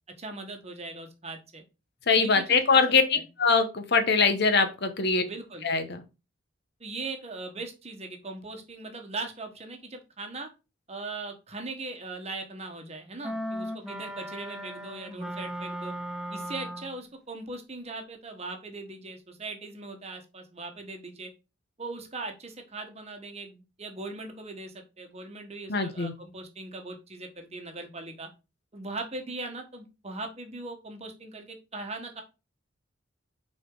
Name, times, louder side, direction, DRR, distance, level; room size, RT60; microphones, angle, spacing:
voice 1, 0.2-1.6 2.1-2.8 3.1-3.2 5.2-5.7 6.8-10.5 10.9-15.9 16.3-21.3 21.8-28.3 28.7-32.2, right 3 dB, 35° right, 4 dB, 1.2 m, -39 dB
voice 2, 2.1-5.2 5.6-6.0 25.7-26.1, left 4 dB, 55° left, 8 dB, 0.9 m, -23 dB
sound 1, 13.2-17.1, equal, 5° right, 0.4 m, -37 dB
6.1 x 4.2 x 3.8 m, 0.29 s
head